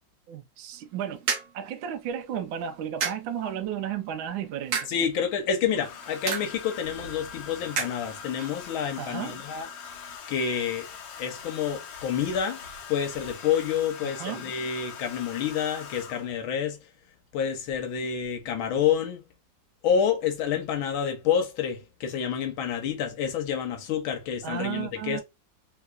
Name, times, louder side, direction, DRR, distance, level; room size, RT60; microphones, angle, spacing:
voice 1, 0.3-1.2 1.5-4.9 9.0-9.4 14.0-14.5 24.4-25.2, right 9 dB, 85° right, 1.3 m, -33 dB
sound 1, 0.7-10.2, right 6 dB, 60° right, 0.9 m, -37 dB
Domestic sounds home sounds, 2.1-2.2 3.6-4.3 5.7-16.5 17.7-17.9 18.2-18.6, left 7 dB, 65° left, 1.2 m, -42 dB
voice 2, 4.9-9.7 10.3-10.9 11.2-16.8 17.3-19.2 19.8-25.2, left 8 dB, 85° left, 1.5 m, -28 dB
3.6 x 2.9 x 2.3 m
omnidirectional pair, 2.1 m